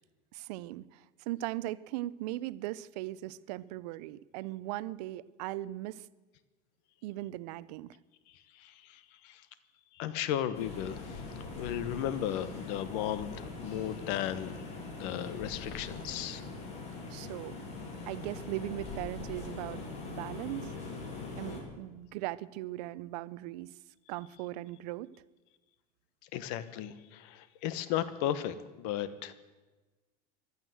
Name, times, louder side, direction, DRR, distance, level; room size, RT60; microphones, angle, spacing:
voice 1, 0.3-6.1 7.0-7.9 17.1-17.6 18.1-20.7 21.4-23.7 24.1-25.1, right 16 dB, 70° right, 19 dB, 0.6 m, -39 dB
voice 2, 8.5-9.4 9.9-14.6 14.9-16.4 26.3-29.3, left 11 dB, 55° left, 14 dB, 1.1 m, -35 dB
sound 1, 10.5-21.6, left 3 dB, 30° left, 3.1 m, -42 dB
15.5 x 12.0 x 7.8 m, 1.2 s
cardioid pair, 170°, 21 cm